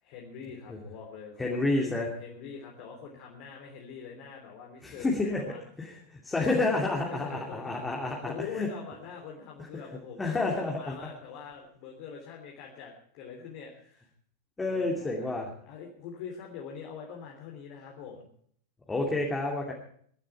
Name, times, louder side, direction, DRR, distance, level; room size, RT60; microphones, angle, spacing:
voice 1, 0.0-5.6 6.3-14.1 14.7-15.3 15.6-18.3, left 6 dB, 45° left, 0 dB, 3.3 m, -44 dB
voice 2, 1.4-2.1 4.8-5.4 5.8-8.7 10.2-10.9 14.6-15.5 18.9-19.7, left 2 dB, 10° left, -1 dB, 2.8 m, -29 dB
22.0 x 12.0 x 4.5 m, 0.62 s
figure-of-eight pair, 90°, 0 cm